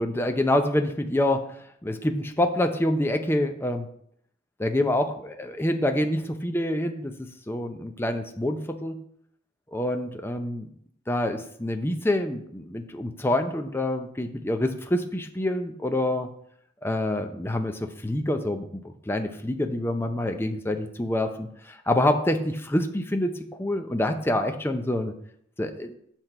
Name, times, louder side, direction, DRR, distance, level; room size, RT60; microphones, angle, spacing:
voice 1, 0.0-1.4 1.8-3.9 4.6-7.1 7.5-9.0 9.7-10.7 11.1-16.3 16.8-25.1 25.6-25.9, left 1 dB, 10° left, 6 dB, 0.6 m, -26 dB
7.9 x 4.5 x 6.6 m, 0.68 s
head